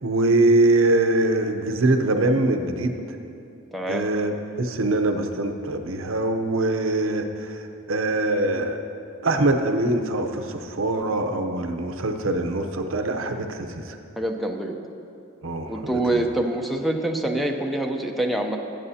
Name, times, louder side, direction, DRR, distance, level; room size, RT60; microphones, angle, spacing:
voice 1, 0.0-2.9 3.9-8.8 9.2-14.0 15.4-16.2, right 2 dB, 70° right, 6 dB, 0.7 m, -23 dB
voice 2, 3.7-4.0 14.2-14.8 15.7-18.6, right 1 dB, ahead, 1 dB, 0.6 m, -25 dB
18.0 x 8.8 x 2.8 m, 2.6 s
head